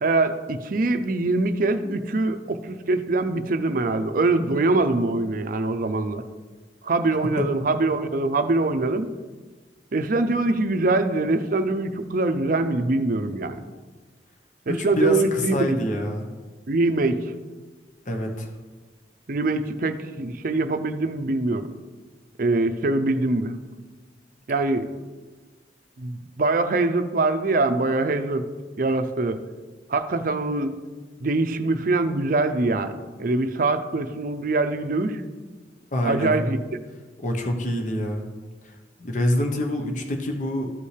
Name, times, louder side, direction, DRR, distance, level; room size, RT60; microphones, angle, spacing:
voice 1, 0.0-6.2 6.8-9.1 9.9-13.7 14.7-15.8 16.7-17.3 19.3-21.7 22.4-23.6 24.5-24.9 26.0-28.5 28.8-29.4 29.9-30.7 31.2-35.2 36.0-36.6, right 2 dB, 50° right, 9 dB, 0.5 m, -23 dB
voice 2, 14.7-16.3 18.1-18.5 35.9-36.3 37.2-38.2 38.6-40.7, left 1 dB, 45° left, 3 dB, 0.9 m, -26 dB
13.5 x 5.4 x 3.3 m, 1.3 s
head